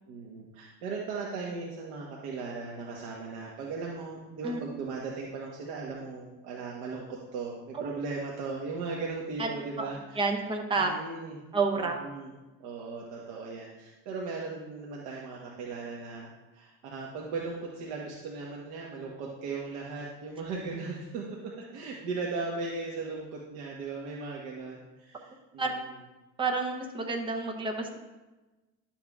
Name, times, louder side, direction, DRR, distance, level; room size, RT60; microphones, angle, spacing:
voice 1, 0.1-10.4 10.8-11.4 11.7-12.3 12.6-25.9, right 4 dB, 80° right, -2 dB, 1.1 m, -38 dB
voice 2, 10.2-10.9 11.5-12.0 25.6-25.7 26.4-27.9, right 3 dB, 15° right, 2 dB, 0.7 m, -29 dB
10.5 x 7.3 x 2.4 m, 1.1 s
cardioid pair, 175°, 30 cm